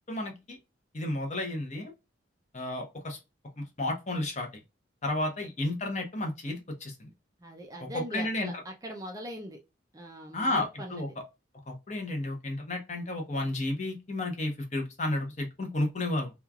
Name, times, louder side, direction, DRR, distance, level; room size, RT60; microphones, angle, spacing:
voice 1, 0.1-0.6 0.9-1.9 2.5-3.2 3.6-4.5 5.0-7.1 7.8-8.5 10.3-11.1 11.7-16.3, left 2 dB, 35° left, 0.8 m, -32 dB
voice 2, 7.4-9.6 9.9-11.1, right 1 dB, 20° right, 0.4 m, -41 dB
3.1 x 2.3 x 2.2 m
head